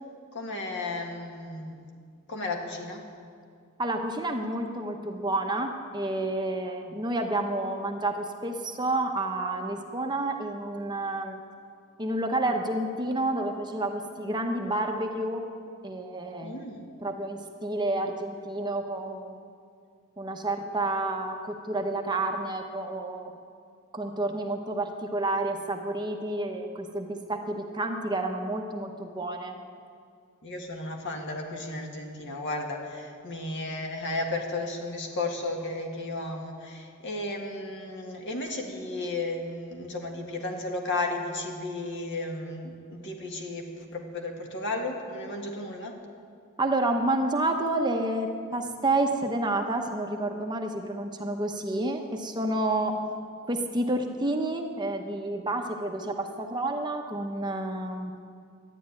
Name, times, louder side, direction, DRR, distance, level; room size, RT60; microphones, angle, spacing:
voice 1, 0.3-1.9 2.3-3.0 16.4-16.9 30.4-46.0, left 2 dB, 55° left, 2 dB, 1.9 m, -34 dB
voice 2, 3.8-11.4 12.0-15.4 15.8-16.6 17.0-19.4 20.2-23.3 23.9-29.5 46.6-52.9 53.5-58.1, right 2 dB, 20° right, 3 dB, 0.9 m, -29 dB
12.5 x 10.0 x 9.4 m, 2.3 s
head